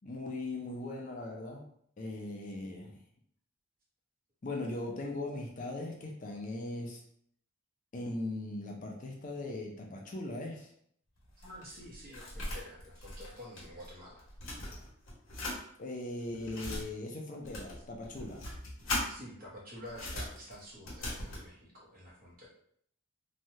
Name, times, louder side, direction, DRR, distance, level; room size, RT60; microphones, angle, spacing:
voice 1, 0.0-1.6 2.0-3.0 4.4-7.0 7.9-10.7 15.8-18.4, left 2 dB, 35° left, 0 dB, 0.4 m, -39 dB
sound 1, 11.2-13.9 14.2-15.6 16.2-16.8 17.4-19.1 19.8-21.5, left 1 dB, 65° left, 1.1 m, -39 dB
voice 2, 11.4-14.2 19.1-22.5, equal, 40° right, -4 dB, 0.9 m, -49 dB
3.1 x 2.2 x 2.7 m, 0.66 s
head